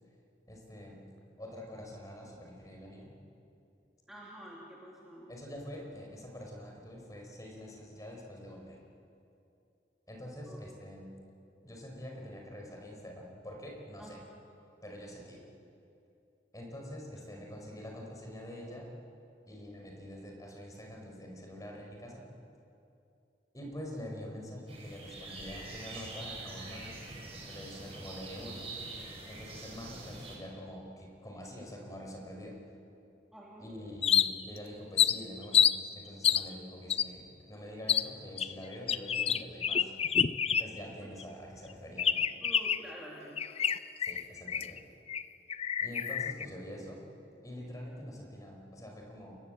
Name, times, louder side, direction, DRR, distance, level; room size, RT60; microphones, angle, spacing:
voice 1, 0.5-1.0 1.4-3.2 5.3-8.8 10.1-11.1 11.6-14.2 14.8-15.4 16.5-18.9 19.5-22.2 23.5-27.0 27.4-28.6 29.3-32.6 33.6-39.9 40.5-42.2 44.0-44.8 45.8-47.0 47.4-49.4, equal, 20° left, 0 dB, 5.1 m, -45 dB
voice 2, 4.1-5.3 10.5-10.6 14.0-14.2 33.3-33.7 41.0-41.1 42.4-43.5, equal, 5° right, -5 dB, 2.9 m, -48 dB
sound 1, 24.7-30.4, right 2 dB, 35° right, 6.5 m, -45 dB
sound 2, 34.0-34.6 35.0-35.8 36.2-36.5 36.9-37.1 37.9-38.1 38.4-40.9 41.2-41.3 42.0-42.9 43.4-44.8 45.1-45.2 45.5-46.5, left 8 dB, 35° left, 0.6 m, -28 dB
29.0 x 21.5 x 8.0 m, 2.6 s
head